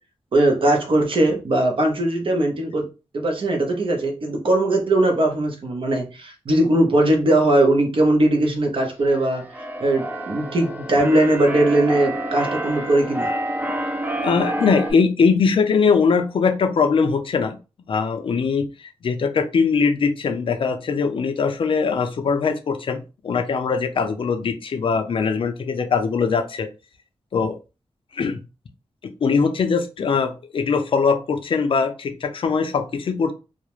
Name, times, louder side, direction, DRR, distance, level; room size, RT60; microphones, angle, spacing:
voice 1, 0.3-2.8 3.1-9.4 9.8-13.3, right 1 dB, 55° right, 3 dB, 0.7 m, -19 dB
Keyboard (musical), 9.0-14.9, right 1 dB, 15° right, 0.3 m, -28 dB
voice 2, 14.2-17.6 17.9-26.7 27.3-27.6 28.1-28.4 29.2-33.3, left 5 dB, 55° left, 7 dB, 0.4 m, -21 dB
2.3 x 2.0 x 2.9 m, 0.30 s
wide cardioid pair, 140°, 10 cm